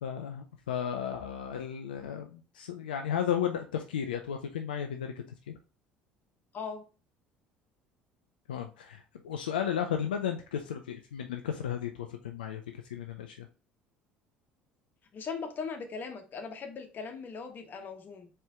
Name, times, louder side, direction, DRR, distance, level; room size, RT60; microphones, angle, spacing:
voice 1, 0.0-5.1 5.5-5.6 8.5-13.5, left 9 dB, 75° left, 5 dB, 0.4 m, -34 dB
voice 2, 15.1-18.3, left 5 dB, 40° left, 5 dB, 1.0 m, -39 dB
4.4 x 3.2 x 3.5 m, 0.34 s
figure-of-eight pair, 60°, 5 cm